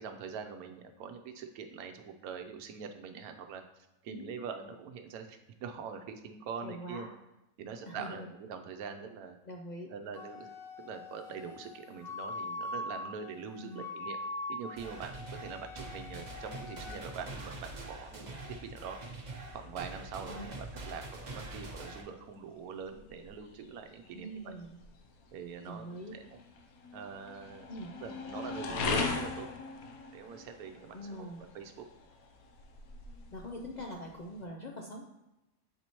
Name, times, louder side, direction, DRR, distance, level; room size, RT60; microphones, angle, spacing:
voice 1, 0.0-3.6 4.0-7.1 7.6-9.4 9.9-10.5 10.8-14.2 14.5-19.0 19.5-24.5 25.3-26.4 26.9-27.7 28.0-29.5 30.1-31.9, right 6 dB, 85° right, 6 dB, 1.1 m, -44 dB
voice 2, 4.1-4.4 6.6-7.1 7.9-8.3 9.5-9.9 13.6-13.9 20.3-20.5 24.1-24.8 25.6-26.1 27.7-27.9 30.9-31.4 33.3-35.1, equal, 65° left, 0 dB, 0.4 m, -43 dB
Wind instrument woodwind instrument, 10.1-17.0, left 2 dB, 50° left, 0.9 m, -42 dB
sound 1, 14.7-22.0, right 2 dB, 35° right, 0.9 m, -44 dB
sound 2, 19.0-34.4, left 3 dB, 85° left, 1.1 m, -41 dB
7.6 x 4.2 x 3.0 m, 0.97 s
omnidirectional pair, 1.5 m